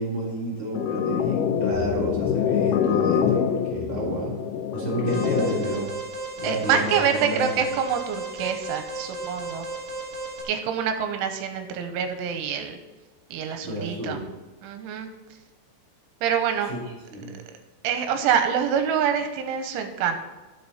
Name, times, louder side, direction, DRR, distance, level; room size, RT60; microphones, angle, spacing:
voice 1, 0.0-4.3 4.7-5.9 6.4-7.6 13.6-14.2 16.7-16.8 17.1-17.3, right 1 dB, 5° left, -6 dB, 1.9 m, -30 dB
sound 1, 0.7-5.7, left 8 dB, 85° left, 2.2 m, -25 dB
Alarm, 5.1-10.4, right 2 dB, 65° right, 1.8 m, -35 dB
voice 2, 6.4-9.7 10.5-12.8 13.3-14.2 14.6-15.1 16.2-16.7 17.8-20.2, right 7 dB, 85° right, 6 dB, 3.2 m, -26 dB
13.0 x 7.5 x 4.2 m, 1.2 s
omnidirectional pair, 5.6 m